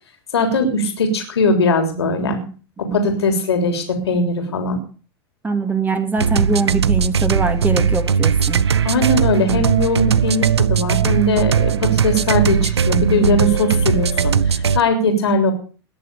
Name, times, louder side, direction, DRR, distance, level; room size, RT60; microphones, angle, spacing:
voice 1, 0.3-2.4 2.9-4.8 8.9-15.5, left 2 dB, 80° left, 5 dB, 3.4 m, -19 dB
voice 2, 5.4-8.6, right 4 dB, 15° right, 7 dB, 2.6 m, -22 dB
sound 1, 6.2-14.8, right 7 dB, 90° right, 0.6 m, -18 dB
20.0 x 7.1 x 6.9 m, 0.39 s
hypercardioid pair, 95°, 13 cm